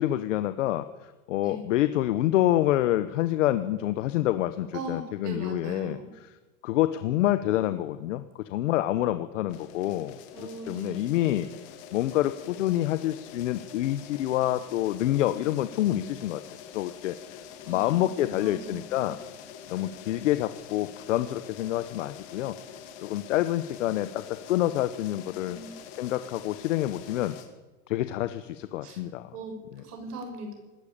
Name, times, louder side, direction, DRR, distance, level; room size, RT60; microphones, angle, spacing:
voice 1, 0.0-6.0 6.6-11.5 11.9-16.4 16.7-17.4 17.7-19.2 19.7-22.5 23.0-25.6 26.0-27.3 27.9-29.3, left 14 dB, 55° left, 11 dB, 1.1 m, -27 dB
voice 2, 4.7-6.1 10.3-11.2 17.6-19.2 19.7-20.0 25.4-25.7 28.8-29.0 29.3-30.5, right 2 dB, 85° right, 5 dB, 6.8 m, -40 dB
sound 1, 9.5-27.5, left 8 dB, 30° left, 2.2 m, -46 dB
19.0 x 15.5 x 8.8 m, 1.2 s
supercardioid pair, 175°, 45 cm